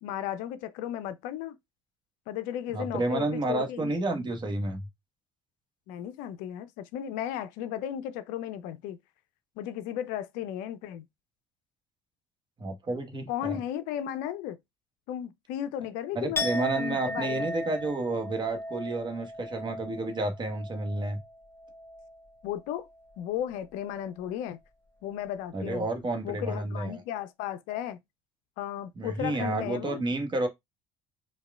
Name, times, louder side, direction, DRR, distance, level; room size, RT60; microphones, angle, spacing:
voice 1, 0.0-1.6 2.3-3.9 5.9-9.0 9.6-11.1 13.3-14.6 15.1-17.5 22.4-22.9 23.2-24.6 25.0-25.9 26.2-28.0 28.6-30.0, left 11 dB, 65° left, 0.5 m, -35 dB
voice 2, 2.7-4.9 12.6-13.6 16.1-21.2 25.5-27.0 28.9-30.5, right 2 dB, 30° right, 1.1 m, -30 dB
Chink clink, 16.4-22.3 22.6-23.0, left 1 dB, 15° left, 1.1 m, -37 dB
4.7 x 2.2 x 2.3 m
hypercardioid pair, 60°, 15 cm